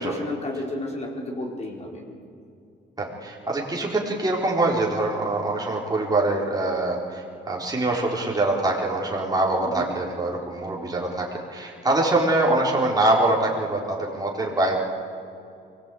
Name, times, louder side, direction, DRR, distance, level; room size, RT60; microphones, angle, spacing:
voice 1, 0.0-2.0 9.6-9.9, left 1 dB, 35° left, -1 dB, 4.3 m, -32 dB
voice 2, 3.0-14.8, right 2 dB, 20° right, -3 dB, 4.2 m, -24 dB
24.0 x 18.5 x 8.6 m, 2.6 s
cardioid pair, 90°, 20 cm